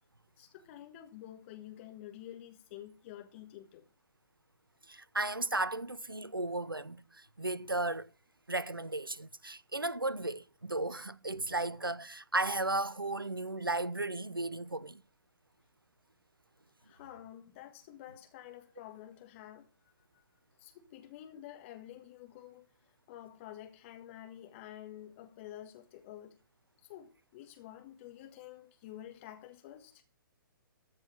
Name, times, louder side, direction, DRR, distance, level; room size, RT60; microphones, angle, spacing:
voice 1, 0.4-3.8 16.8-20.2 20.6-26.4 26.8-30.0, left 12 dB, 35° left, 1.5 m, -50 dB
voice 2, 4.9-8.1 8.5-15.0, right 2 dB, 90° right, 0.6 m, -35 dB
14.0 x 4.8 x 7.2 m
figure-of-eight pair, 120°, 11 cm